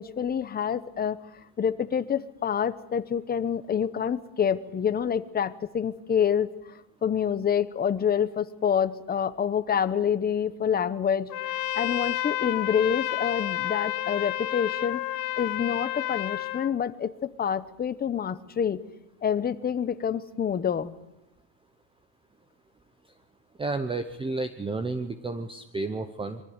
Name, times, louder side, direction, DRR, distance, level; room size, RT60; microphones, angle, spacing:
voice 1, 0.0-15.0 15.4-18.8 19.2-20.9, left 8 dB, 20° left, 12 dB, 0.9 m, -27 dB
Trumpet, 11.3-16.7, left 13 dB, 40° left, 1.0 m, -30 dB
voice 2, 23.6-26.4, right 3 dB, 10° right, 11 dB, 0.8 m, -31 dB
23.5 x 14.5 x 9.6 m, 0.88 s
cardioid pair, 155°, 50 cm